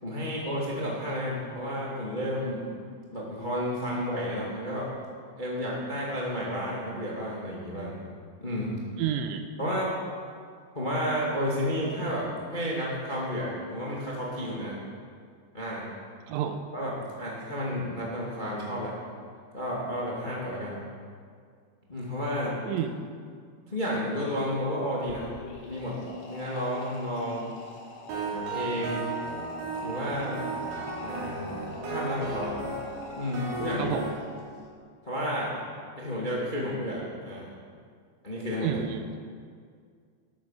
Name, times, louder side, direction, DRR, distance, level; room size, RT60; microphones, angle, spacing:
voice 1, 0.0-2.7 3.1-4.9 5.4-8.0 8.4-8.8 9.6-10.0 10.7-14.8 15.5-15.9 16.7-16.9 17.2-18.9 19.5-20.8 21.9-22.5 23.7-25.3 25.6-26.0 26.3-27.5 28.3-29.1 29.8-30.4 31.0-31.5 31.8-32.6 33.2-34.0 35.0-35.5 36.0-37.5 38.2-38.8, equal, 30° left, -5 dB, 0.8 m, -31 dB
voice 2, 9.0-9.5 16.3-16.6 22.6-23.0 33.8-34.1 38.6-39.0, right 9 dB, 85° right, 7 dB, 3.1 m, -30 dB
sound 1, 25.0-34.7, left 3 dB, 80° left, 4.2 m, -45 dB
sound 2, 28.1-34.1, right 3 dB, 70° right, 4.9 m, -35 dB
14.0 x 12.5 x 5.9 m, 2.1 s
omnidirectional pair, 5.4 m